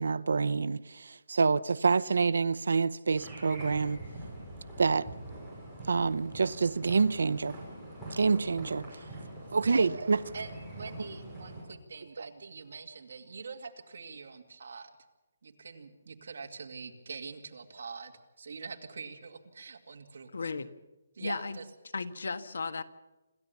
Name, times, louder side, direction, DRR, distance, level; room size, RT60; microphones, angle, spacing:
voice 1, 0.0-4.0 4.8-5.1 5.9-7.6 8.1-8.9 9.5-10.2 12.2-12.3, right 4 dB, 75° right, 0.7 m, -27 dB
sound 1, 3.1-11.6, right 1 dB, 5° left, 5.8 m, -44 dB
voice 2, 10.3-14.9 15.4-20.5 21.1-21.7, right 4 dB, 55° right, 2.2 m, -44 dB
voice 3, 20.3-20.7 21.2-21.6 21.9-22.8, left 4 dB, 90° left, 1.4 m, -35 dB
26.5 x 14.0 x 7.1 m
hypercardioid pair, 180°, 0 cm